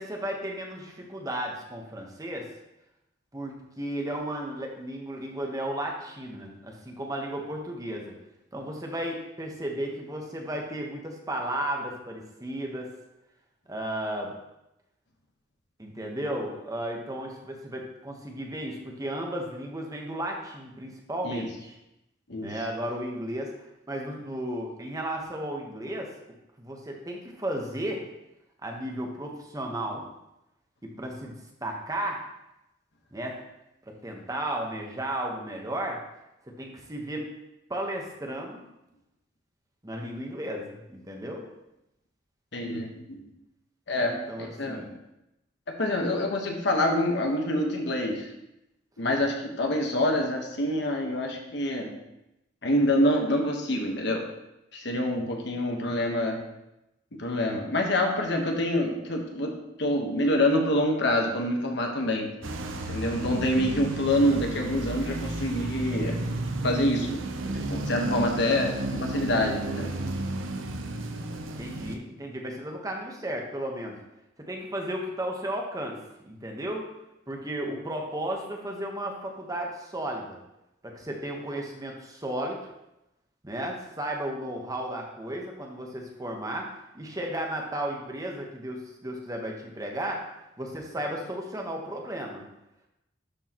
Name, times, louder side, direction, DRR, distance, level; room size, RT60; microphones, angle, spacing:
voice 1, 0.0-2.5 3.3-8.1 8.5-12.9 13.7-14.3 15.8-21.7 22.4-26.1 26.6-28.0 28.6-30.0 30.8-31.3 31.6-32.2 33.1-33.4 33.9-36.0 36.4-37.2 37.7-38.6 39.8-41.5 44.0-44.9 71.6-74.0 74.5-76.0 76.2-76.9 77.3-80.4 80.8-82.7 83.4-92.4, right 1 dB, 20° right, 0 dB, 1.0 m, -34 dB
voice 2, 42.5-43.2 43.9-44.1 44.4-44.8 45.8-48.3 49.0-51.9 52.6-54.2 54.7-56.4 57.2-59.5 59.8-62.3 62.9-66.2 66.6-67.2 67.7-69.9, left 1 dB, 60° left, 2 dB, 1.2 m, -26 dB
sound 1, 62.4-72.0, right 2 dB, 85° right, 0.7 m, -33 dB
11.5 x 4.6 x 3.0 m, 0.89 s
head